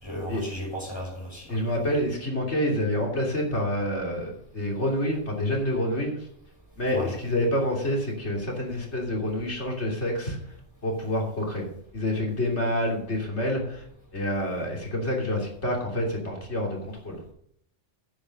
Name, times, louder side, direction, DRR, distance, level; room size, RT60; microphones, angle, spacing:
voice 1, 0.0-1.6 6.9-7.2, equal, 20° left, -2 dB, 5.9 m, -35 dB
voice 2, 1.5-6.3 6.8-10.4 10.8-11.7 11.9-13.8 14.1-17.2, left 1 dB, 60° left, -1 dB, 3.4 m, -27 dB
10.5 x 9.0 x 6.6 m, 0.67 s
omnidirectional pair, 1.3 m